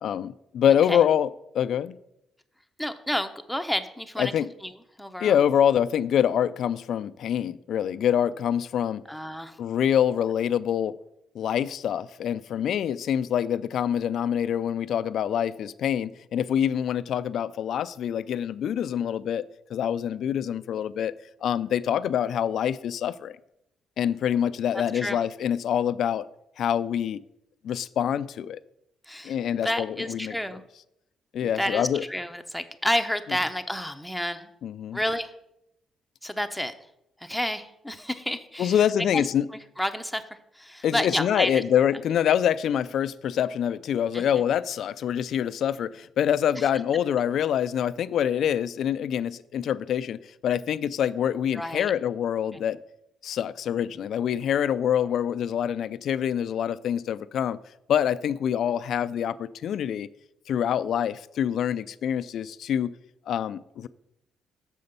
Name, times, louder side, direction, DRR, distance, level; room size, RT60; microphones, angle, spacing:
voice 1, 0.0-1.3 1.5-2.0 4.2-4.5 5.2-9.0 9.6-11.0 11.3-21.1 21.4-23.4 24.0-26.3 26.6-27.2 27.6-28.6 29.2-30.4 31.3-32.0 34.6-35.0 38.6-39.5 40.8-52.8 53.2-57.6 57.9-60.1 60.5-62.9 63.3-63.9, left 9 dB, 70° left, 0.3 m, -25 dB
voice 2, 2.8-4.3 4.6-4.7 5.0-5.4 9.1-9.6 24.7-25.2 29.1-30.6 31.4-34.5 34.9-35.3 36.2-36.7 37.2-38.8 39.1-39.2 39.8-41.6 44.1-44.4 46.6-46.7 51.5-51.9 52.5-52.6, left 1 dB, ahead, 0.7 m, -30 dB
6.9 x 5.4 x 6.7 m
cardioid pair, 90°, 0 cm